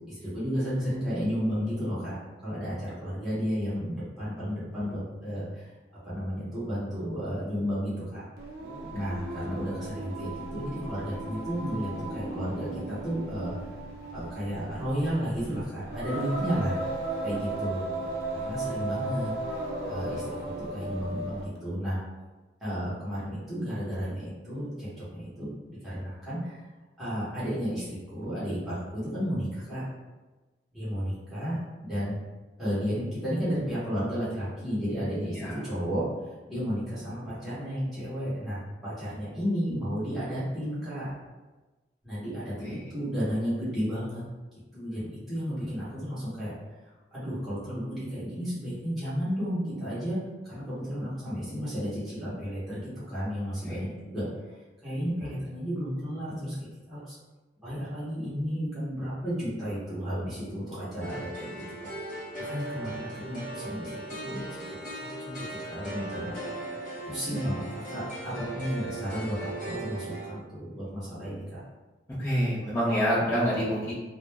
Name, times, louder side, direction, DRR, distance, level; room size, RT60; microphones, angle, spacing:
voice 1, 0.1-2.2 2.4-8.2 8.9-13.6 14.1-16.7 17.2-17.8 18.3-19.3 19.8-20.4 20.7-22.0 22.6-26.6 27.0-29.8 30.7-31.6 31.8-32.2 32.6-36.0 36.5-41.1 42.0-44.2 44.7-46.5 47.1-50.2 50.4-54.2 54.8-57.1 57.6-61.5 62.4-63.9 64.2-64.6 65.2-66.5 67.1-71.6, equal, ahead, -12 dB, 0.9 m, -32 dB
Singing, 8.4-21.6, right 2 dB, 55° right, 0.5 m, -36 dB
sound 1, 61.0-70.3, right 1 dB, 45° left, 0.8 m, -38 dB
voice 2, 72.2-73.9, equal, 15° left, -11 dB, 0.6 m, -27 dB
2.4 x 2.1 x 3.3 m, 1.2 s
head